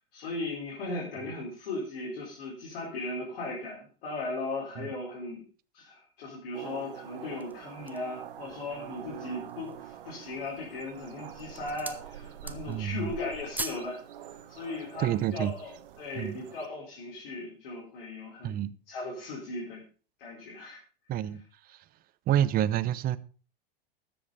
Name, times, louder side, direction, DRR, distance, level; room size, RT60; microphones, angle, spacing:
voice 1, 0.1-5.4 5.7-14.0 14.5-19.8 20.2-20.8, left 2 dB, 65° left, 4.6 m, -37 dB
sound 1, 6.5-16.7, right 10 dB, 65° right, 1.4 m, -45 dB
sound 2, 7.2-8.2 8.8-8.9 9.3-9.9 10.6-11.0 11.3-12.1 12.3-12.9 13.1-13.9 14.2-14.4, right 2 dB, 5° right, 0.9 m, -40 dB
voice 2, 12.7-13.1 15.0-15.5 16.2-16.4 18.4-18.7 21.1-21.4 21.7-21.8 22.3-23.2, right 11 dB, 30° right, 0.7 m, -28 dB
13.5 x 7.9 x 5.1 m
figure-of-eight pair, 90°, 29 cm